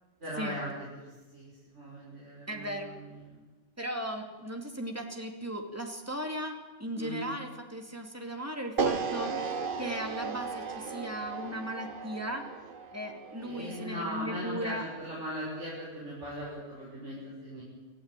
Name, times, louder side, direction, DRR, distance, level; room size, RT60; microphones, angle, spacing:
voice 1, 0.2-3.4 6.9-7.3 13.4-17.6, equal, 70° right, -7 dB, 6.6 m, -39 dB
voice 2, 2.5-2.9 3.8-12.4 12.9-14.8, equal, 10° right, 3 dB, 2.7 m, -37 dB
sound 1, 8.8-14.9, right 5 dB, 45° right, 1.1 m, -35 dB
25.5 x 14.5 x 9.1 m, 1.2 s
omnidirectional pair, 1.3 m